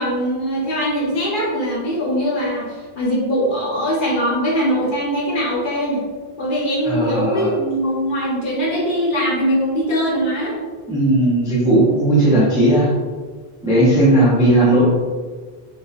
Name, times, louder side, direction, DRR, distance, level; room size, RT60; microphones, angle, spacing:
voice 1, 0.0-6.0 6.4-10.5, equal, 60° left, -5 dB, 0.8 m, -21 dB
voice 2, 6.9-7.5 10.9-12.9 13.6-14.9, right 1 dB, 5° right, -8 dB, 0.3 m, -16 dB
2.4 x 2.1 x 2.4 m, 1.4 s
omnidirectional pair, 1.1 m